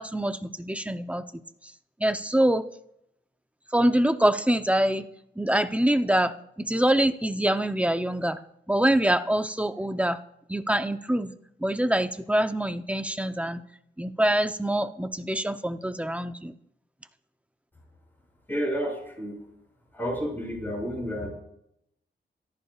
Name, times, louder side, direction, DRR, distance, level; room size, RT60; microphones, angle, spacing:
voice 1, 0.0-1.7 2.0-2.6 3.7-5.0 5.4-8.4 8.7-10.2 10.5-11.3 11.6-13.6 14.0-16.5, right 1 dB, 5° right, 8 dB, 0.7 m, -25 dB
voice 2, 18.5-19.4 19.9-21.3, equal, 10° left, -2 dB, 6.4 m, -30 dB
28.5 x 14.0 x 2.4 m, 0.76 s
wide cardioid pair, 110°, 20 cm